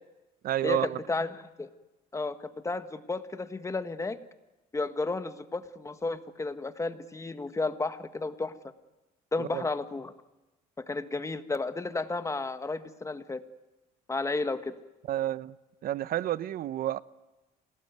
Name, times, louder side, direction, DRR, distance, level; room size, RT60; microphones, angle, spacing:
voice 1, 0.4-1.0 9.4-9.7 15.1-15.6 15.8-17.0, right 13 dB, 60° right, 0.8 m, -30 dB
voice 2, 2.1-4.2 4.7-8.5 9.3-10.1 10.8-13.4 14.1-14.7, left 3 dB, 20° left, 1.6 m, -32 dB
26.5 x 18.5 x 9.4 m
cardioid pair, 110°, 17 cm